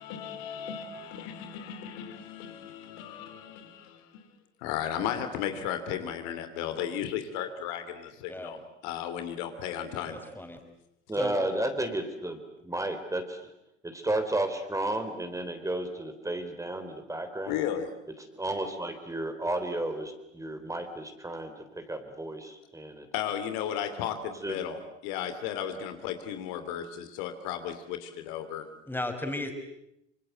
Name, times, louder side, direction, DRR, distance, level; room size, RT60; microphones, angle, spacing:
voice 1, 0.0-4.3 4.6-10.2 17.5-17.9 23.1-28.7, left 9 dB, 55° left, 2.9 m, -35 dB
voice 2, 8.3-8.6 10.1-10.6 11.2-11.4 28.9-29.5, left 2 dB, 5° left, 5.3 m, -34 dB
voice 3, 11.1-13.5 13.8-17.6 18.4-23.1 24.4-24.6, right 1 dB, 10° right, 3.6 m, -33 dB
27.0 x 26.0 x 8.0 m
figure-of-eight pair, 70°, 34 cm